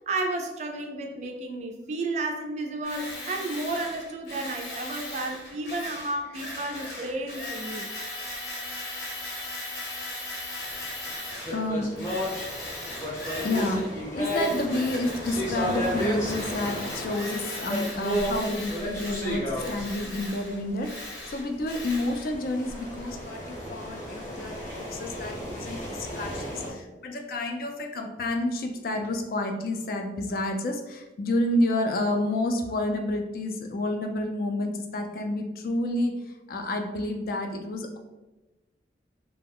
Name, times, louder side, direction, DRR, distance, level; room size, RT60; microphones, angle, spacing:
voice 1, 0.1-7.9, right 2 dB, 40° right, 3 dB, 0.3 m, -32 dB
Tools, 2.8-11.6 12.0-13.9 14.2-22.3, left 1 dB, 75° left, 0.8 m, -38 dB
sound 1, 11.1-20.8 21.6-26.7, equal, 15° left, 0.7 m, -33 dB
voice 2, 11.5-11.9 13.4-38.0, left 1 dB, 55° left, 4 dB, 0.3 m, -29 dB
2.3 x 2.0 x 3.5 m, 1.1 s
head